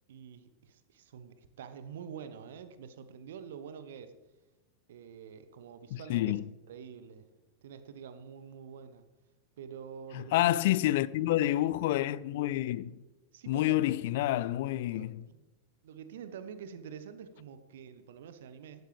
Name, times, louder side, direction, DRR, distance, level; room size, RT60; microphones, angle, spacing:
voice 1, 0.1-4.1 4.9-6.4 6.7-7.3 7.6-9.1 9.6-10.6 13.3-14.0 14.9-15.4 15.8-18.8, right 7 dB, 60° right, 1.1 m, -47 dB
voice 2, 5.9-6.4 10.1-13.0 13.5-15.2, left 14 dB, 50° left, 0.4 m, -28 dB
16.0 x 12.0 x 3.4 m
figure-of-eight pair, 90°, 0 cm